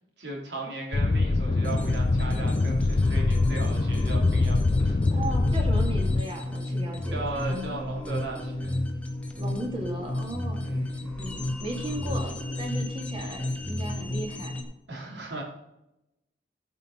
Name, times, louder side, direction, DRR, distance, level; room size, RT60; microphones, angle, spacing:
voice 1, 0.2-5.0 7.1-8.8 10.6-11.3 14.9-15.4, right 3 dB, 65° right, -1 dB, 3.1 m, -37 dB
sound 1, 0.9-6.2, left 3 dB, 35° left, 0.4 m, -24 dB
sound 2, 1.6-14.6, left 1 dB, 5° left, 1.0 m, -32 dB
voice 2, 5.1-7.8 9.4-10.7 11.2-14.6, right 1 dB, 30° right, 0 dB, 2.2 m, -36 dB
14.0 x 5.5 x 4.3 m, 0.90 s
head